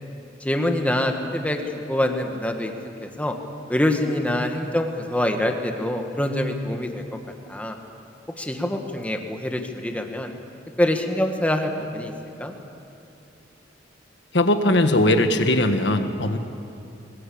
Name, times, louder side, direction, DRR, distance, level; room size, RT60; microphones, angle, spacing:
voice 1, 0.4-1.6 1.9-2.7 3.0-3.3 3.7-7.0 7.5-7.8 8.4-10.3 10.8-12.1 12.4-12.5, left 1 dB, 10° left, 4 dB, 1.8 m, -25 dB
voice 2, 14.3-16.4, left 1 dB, 70° left, 7 dB, 1.6 m, -19 dB
22.0 x 20.0 x 8.8 m, 2.8 s
head